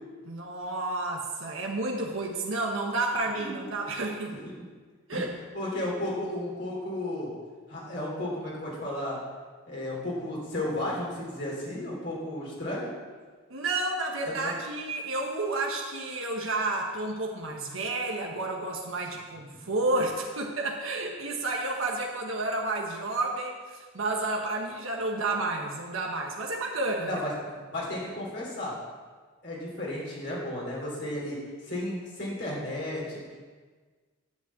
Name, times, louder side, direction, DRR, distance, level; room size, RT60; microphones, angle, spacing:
voice 1, 0.2-4.3 5.1-5.3 13.5-27.2, right 2 dB, 85° right, 0 dB, 1.3 m, -31 dB
voice 2, 4.3-4.7 5.1-5.2 5.5-7.3 7.7-9.2 9.7-12.9 14.3-14.5 19.6-19.7 27.0-27.3 27.7-28.8 29.4-31.4 31.6-33.2, left 1 dB, 55° left, -4 dB, 3.4 m, -33 dB
11.0 x 5.5 x 8.3 m, 1.5 s
head